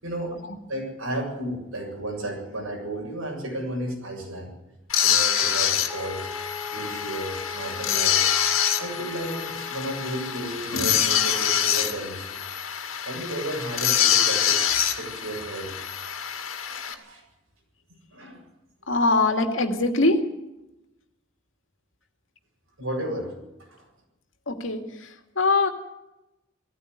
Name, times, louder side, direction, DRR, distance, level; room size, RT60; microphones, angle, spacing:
voice 1, 0.0-0.4 0.7-4.5 5.0-6.3 6.7-8.2 8.8-12.4 13.0-15.7 16.1-16.2 16.6-17.2 18.1-18.4 22.8-23.3 23.7-23.8, right 1 dB, 85° right, 1 dB, 7.6 m, -33 dB
sound 1, 4.9-16.9, left 9 dB, 85° left, 2.2 m, -25 dB
sound 2, 5.9-10.6, left 4 dB, 15° left, 1.7 m, -39 dB
voice 2, 18.9-20.2 24.5-25.7, left 3 dB, 65° left, 5 dB, 2.5 m, -23 dB
18.0 x 14.5 x 9.7 m, 0.94 s
head